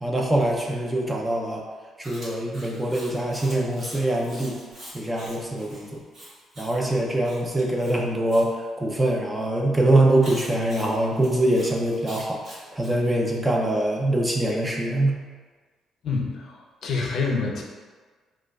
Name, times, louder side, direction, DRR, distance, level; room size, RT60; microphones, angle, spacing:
voice 1, 0.0-1.6 2.0-4.6 4.9-6.0 6.6-15.2, right 1 dB, 10° right, -1 dB, 0.4 m, -23 dB
Chewing mastication, 2.0-8.5 10.2-13.0, equal, 40° right, 1.5 m, -44 dB
voice 2, 16.0-17.6, left 4 dB, 55° left, 0 dB, 0.5 m, -27 dB
4.8 x 2.2 x 2.2 m, 1.4 s
cardioid pair, 145°, 0 cm